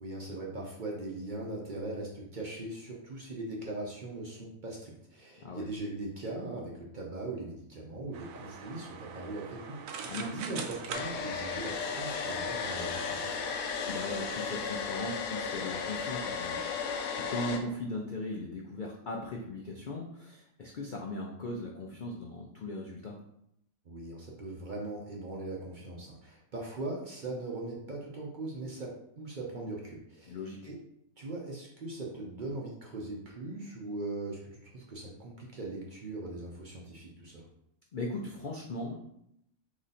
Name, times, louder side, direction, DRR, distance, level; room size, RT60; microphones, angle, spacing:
voice 1, 0.0-13.6 23.8-30.4 30.6-30.8 31.2-37.4, right 2 dB, 45° right, -2 dB, 0.7 m, -40 dB
sound 1, 8.1-14.5, right 6 dB, 75° right, 1.0 m, -44 dB
voice 2, 10.0-10.4 13.9-23.2 30.3-30.6 37.9-39.0, left 1 dB, 60° left, -1 dB, 0.5 m, -38 dB
Domestic sounds home sounds, 10.9-17.6, left 6 dB, 80° left, 1.0 m, -35 dB
3.8 x 3.1 x 4.1 m, 0.76 s
omnidirectional pair, 1.5 m